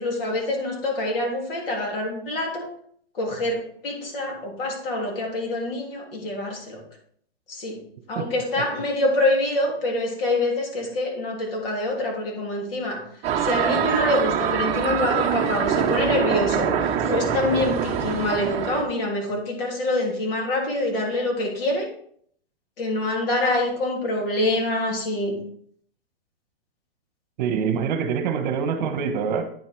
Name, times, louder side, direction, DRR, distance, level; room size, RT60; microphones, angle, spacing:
voice 1, 0.0-2.7 3.1-6.8 7.5-7.8 8.1-13.0 13.4-21.9 22.8-25.4, left 1 dB, 65° left, 0 dB, 3.1 m, -25 dB
sound 1, 13.2-18.8, right 8 dB, 20° right, 0.8 m, -24 dB
voice 2, 27.4-29.4, right 6 dB, 45° right, 8 dB, 1.1 m, -25 dB
9.1 x 5.6 x 4.6 m, 0.63 s
hypercardioid pair, 150°, 30 cm